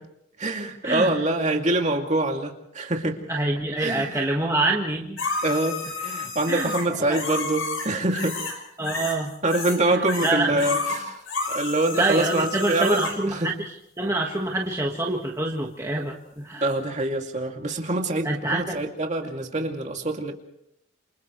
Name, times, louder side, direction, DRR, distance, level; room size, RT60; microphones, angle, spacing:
voice 1, 0.4-3.2 3.8-4.2 5.4-8.4 9.4-11.2 11.5-13.5 16.6-20.3, right 2 dB, 35° right, 2 dB, 2.6 m, -25 dB
voice 2, 3.3-5.5 6.5-6.7 7.0-7.2 8.8-9.3 9.9-10.6 11.9-13.7 14.0-16.6 18.2-18.8, right 2 dB, 15° right, -1 dB, 1.6 m, -26 dB
sound 1, 5.2-8.6 8.8-9.8 10.0-13.2 16.7-16.8, left 3 dB, 75° left, 5.8 m, -31 dB
29.0 x 28.0 x 3.2 m, 0.75 s
head